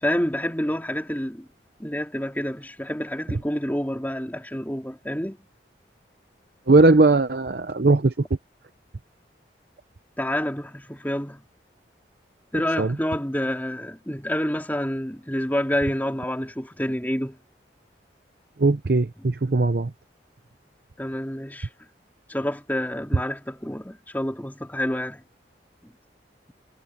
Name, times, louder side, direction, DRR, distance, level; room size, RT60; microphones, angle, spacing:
voice 1, 0.0-1.5 1.8-5.4 10.2-11.4 12.5-17.4 21.0-21.7 22.3-25.2 25.8-25.9, equal, 10° left, 3.0 m, -28 dB
voice 2, 6.7-8.2 12.8-13.0 18.6-19.9, right 3 dB, 55° right, 0.7 m, -19 dB
head